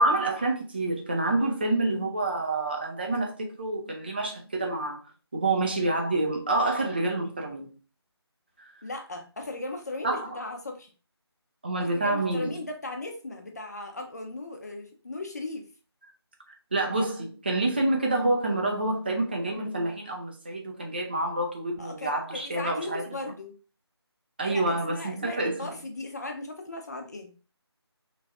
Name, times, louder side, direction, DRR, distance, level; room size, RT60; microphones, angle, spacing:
voice 1, 0.0-5.0 5.3-7.7 8.6-8.7 10.0-10.4 11.6-12.5 16.7-23.0 24.4-25.6, right 2 dB, 20° right, 0.5 m, -27 dB
voice 2, 8.8-10.9 11.8-15.7 21.8-23.5 24.4-27.3, left 2 dB, 40° left, 0.6 m, -37 dB
3.2 x 2.5 x 3.3 m
figure-of-eight pair, 160°, 14 cm